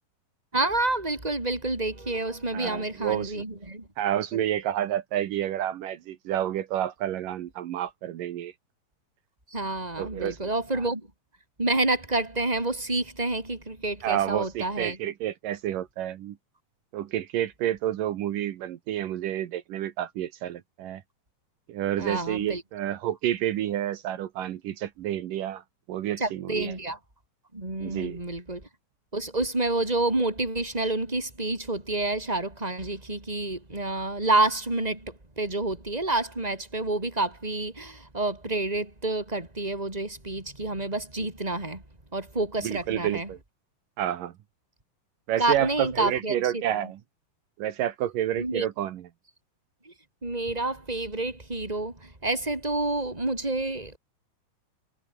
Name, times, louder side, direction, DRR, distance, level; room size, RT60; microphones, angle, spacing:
voice 1, 0.5-3.9 4.3-4.4 9.5-11.1 11.6-15.0 22.0-22.6 26.2-27.0 27.5-28.6 29.1-41.8 42.1-43.3 45.4-46.6 48.4-48.6 49.8-49.9 50.2-54.0, right 2 dB, 10° right, 4.7 m, -28 dB
voice 2, 2.5-3.4 4.0-8.5 10.0-10.5 10.8-10.9 14.0-16.4 16.9-21.0 21.7-25.6 25.9-26.7 27.8-28.2 42.6-43.4 44.0-44.3 45.3-47.0 47.6-49.1, right 11 dB, 80° right, 2.9 m, -29 dB
omnidirectional pair, 3.9 m